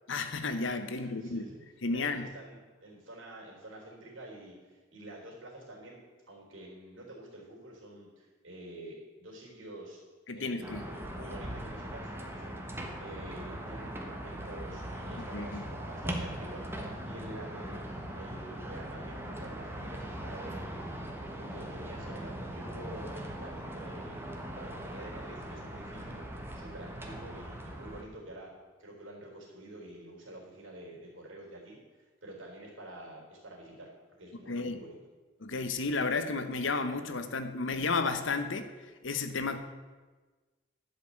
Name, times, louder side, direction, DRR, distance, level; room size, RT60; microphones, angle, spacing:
voice 1, 0.1-1.4 1.8-2.3 10.3-10.8 15.3-15.6 34.5-34.8 35.4-38.7 39.0-39.6, left 3 dB, 65° left, 9 dB, 0.9 m, -32 dB
voice 2, 0.9-1.6 1.9-6.0 6.3-10.0 10.3-12.6 13.0-17.8 18.1-20.9 21.3-28.5 28.8-33.9 34.2-35.0, right 1 dB, 70° right, -2 dB, 3.9 m, -48 dB
sound 1, 10.6-28.0, right 1 dB, 10° right, 1.3 m, -40 dB
12.0 x 5.5 x 8.4 m, 1.3 s
head